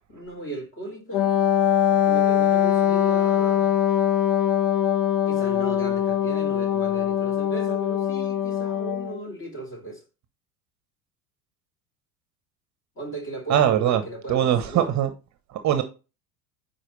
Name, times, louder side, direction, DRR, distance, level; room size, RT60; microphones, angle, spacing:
voice 1, 0.1-1.4 1.9-3.7 5.3-10.0 13.0-14.9, right 1 dB, 25° left, 2.6 m, -37 dB
Wind instrument woodwind instrument, 1.1-9.2, left 10 dB, 40° left, 0.8 m, -22 dB
voice 2, 13.5-14.0 14.3-15.1 15.5-15.8, right 10 dB, 35° right, 1.0 m, -21 dB
9.3 x 4.3 x 3.1 m
figure-of-eight pair, 75°, 50 cm